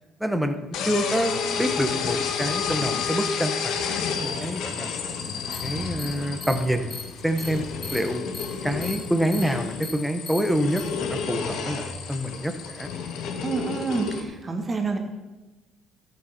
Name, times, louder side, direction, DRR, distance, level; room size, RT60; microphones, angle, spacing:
voice 1, 0.2-4.9 5.6-7.0 7.2-7.6 7.9-8.2 8.6-12.9, equal, ahead, 7 dB, 1.1 m, -27 dB
sound 1, 0.7-14.2, left 6 dB, 75° left, 1.6 m, -30 dB
sound 2, 5.5-5.6 6.0-6.1 6.4-6.5 6.9-7.0 7.4-7.5 7.8-8.0 8.3-8.5 8.8-9.0 9.3-9.4 9.8-9.9 10.3-10.4 10.8-10.9, left 3 dB, 25° left, 2.1 m, -35 dB
voice 2, 13.4-15.0, right 4 dB, 25° right, 4 dB, 1.9 m, -28 dB
13.0 x 7.8 x 6.0 m, 1.1 s
cardioid pair, 120°, 0 cm